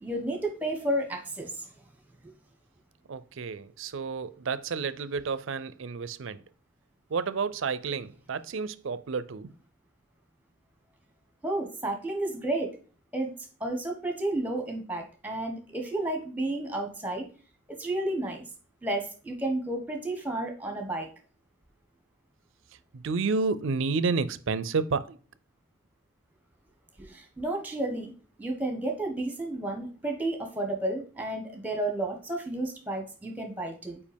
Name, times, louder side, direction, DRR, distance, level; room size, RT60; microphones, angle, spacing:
voice 1, 0.0-1.7 2.2-2.3 11.4-12.7 13.1-13.3 13.6-17.2 17.8-18.4 18.8-21.1 27.0-28.1 28.4-34.0, right 1 dB, 10° right, 1.1 m, -32 dB
voice 2, 3.1-6.4 7.1-9.5 22.9-25.2, right 4 dB, 65° right, 0.5 m, -30 dB
5.2 x 4.8 x 5.1 m
head